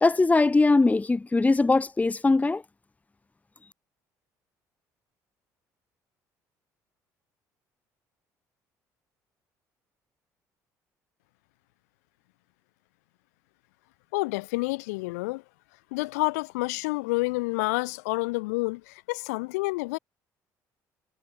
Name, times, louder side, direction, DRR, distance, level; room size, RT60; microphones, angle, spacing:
voice 1, 0.0-2.6, left 3 dB, 20° left, 1.0 m, -21 dB
voice 2, 14.1-15.4 15.9-20.0, left 25 dB, 90° left, 4.2 m, -29 dB
supercardioid pair, 65°, 8 cm